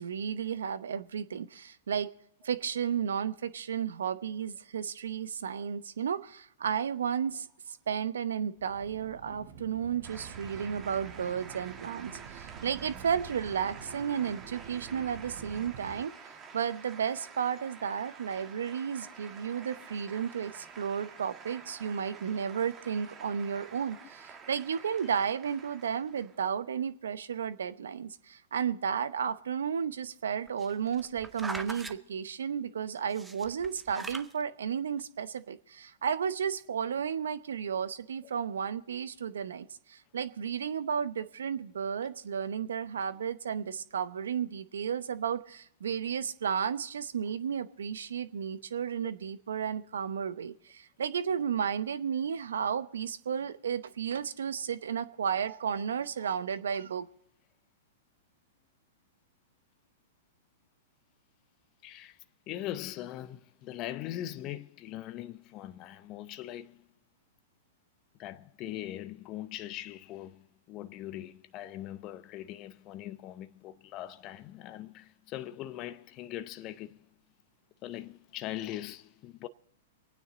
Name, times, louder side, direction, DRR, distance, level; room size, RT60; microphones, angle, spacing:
voice 1, 0.0-2.1 2.4-16.1 16.5-57.1, right 7 dB, 75° right, 0.8 m, -33 dB
sound 1, 8.6-16.1, right 8 dB, 55° right, 1.1 m, -48 dB
sound 2, 10.0-26.5, right 6 dB, 25° right, 1.6 m, -49 dB
sound 3, 30.5-31.9 33.1-34.3 35.0-35.1, right 3 dB, 10° right, 0.8 m, -40 dB
voice 2, 61.8-62.2 62.5-66.9 68.2-77.1 77.8-79.5, left 13 dB, 40° left, 0.7 m, -41 dB
24.5 x 9.4 x 4.0 m
hypercardioid pair, 115°, 0 cm